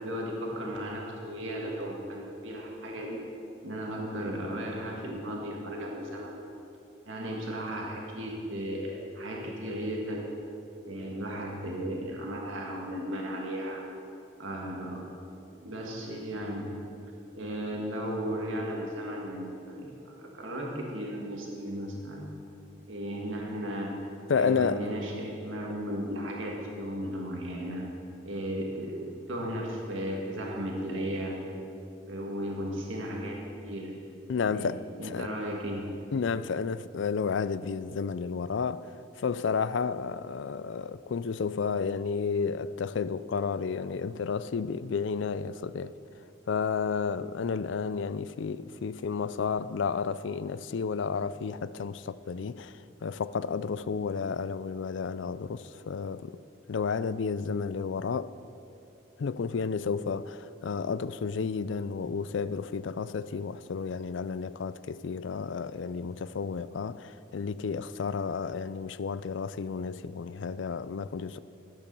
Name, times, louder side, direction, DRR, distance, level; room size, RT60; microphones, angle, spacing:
voice 1, 0.0-3.2 3.6-6.3 7.1-10.3 10.8-13.8 14.4-15.0 15.6-16.7 17.3-22.2 22.9-24.0 24.4-27.9 28.2-31.4 32.1-33.9 34.5-35.9, equal, 85° right, 1.8 m, -35 dB
voice 2, 24.3-24.9 34.3-35.3 36.1-45.9 46.5-56.4 56.7-58.3 59.2-71.4, left 5 dB, 75° left, 0.4 m, -31 dB
13.0 x 8.5 x 6.8 m
head